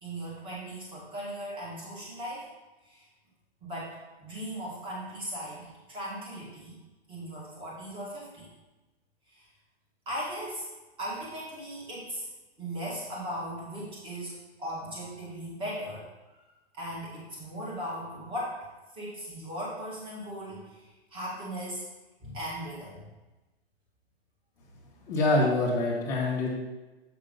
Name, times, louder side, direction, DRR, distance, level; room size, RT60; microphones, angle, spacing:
voice 1, 0.0-2.5 2.8-3.1 3.6-6.8 7.1-8.5 9.3-9.5 10.1-10.7 11.0-12.3 12.6-16.1 16.3-16.4 16.7-18.6 18.9-21.8 22.2-23.0, equal, 15° right, -6 dB, 2.0 m, -38 dB
voice 2, 25.1-26.5, left 2 dB, 10° left, -4 dB, 1.6 m, -25 dB
7.7 x 3.7 x 5.4 m, 1.1 s
hypercardioid pair, 160°, 32 cm